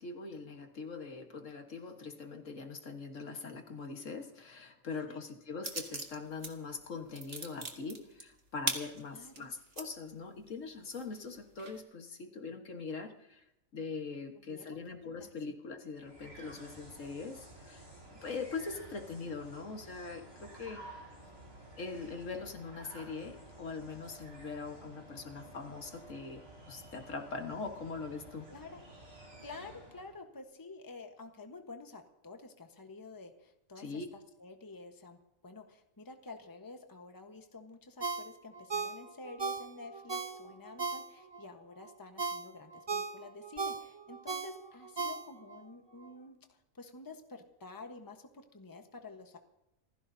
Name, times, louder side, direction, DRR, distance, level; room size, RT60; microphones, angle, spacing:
voice 1, 0.0-13.4 13.7-17.9 18.2-20.8 21.8-26.4 26.7-28.5 33.8-34.1, left 4 dB, 65° left, 4 dB, 1.8 m, -42 dB
sound 1, 5.6-6.5 6.8-9.9 10.4-10.5 10.9-11.8, right 3 dB, 45° right, 1.8 m, -39 dB
voice 2, 9.1-9.5 14.5-15.3 28.5-28.8 29.4-34.0 34.4-49.4, left 3 dB, 15° left, 5 dB, 1.2 m, -50 dB
sound 2, 15.9-30.2, right 1 dB, 85° right, 6.0 m, -52 dB
Ringtone, 38.0-41.4 41.9-45.6 46.0-46.1, right 4 dB, 25° right, 0.7 m, -38 dB
27.5 x 15.5 x 2.8 m, 0.88 s
omnidirectional pair, 1.4 m